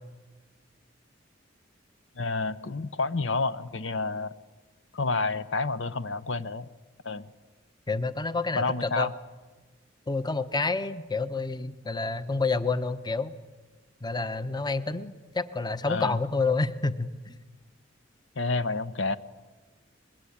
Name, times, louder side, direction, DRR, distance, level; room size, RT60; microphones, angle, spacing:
voice 1, 2.2-4.3 4.9-6.7 7.0-7.3 8.6-9.1 15.8-16.2 18.4-19.2, left 3 dB, 75° left, 14 dB, 0.8 m, -29 dB
voice 2, 7.9-9.1 10.1-13.3 14.0-17.3, left 3 dB, 20° left, 12 dB, 0.9 m, -29 dB
25.0 x 21.5 x 8.7 m, 1.3 s
head